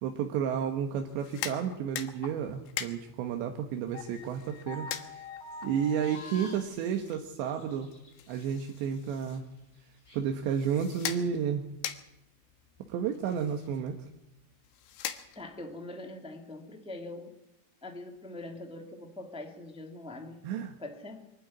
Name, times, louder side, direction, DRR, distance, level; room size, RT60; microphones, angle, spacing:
voice 1, 0.0-5.3 5.6-7.9 8.3-9.4 10.1-11.6 12.9-13.9 20.4-20.7, right 8 dB, 85° right, 4 dB, 3.7 m, -32 dB
sound 1, 1.1-15.7, left 11 dB, 90° left, 3.6 m, -44 dB
sound 2, 1.5-1.7 2.1-2.5 2.9-3.0 3.6-3.7 3.9-6.6, left 4 dB, 65° left, 3.6 m, -44 dB
sound 3, 4.4-4.8 5.2-8.3 8.6-10.2, left 1 dB, 20° left, 8.1 m, -57 dB
voice 2, 15.3-17.3 17.8-20.4 20.8-21.3, left 2 dB, 5° right, 3 dB, 0.9 m, -43 dB
24.0 x 12.5 x 9.6 m, 0.89 s
omnidirectional pair, 5.0 m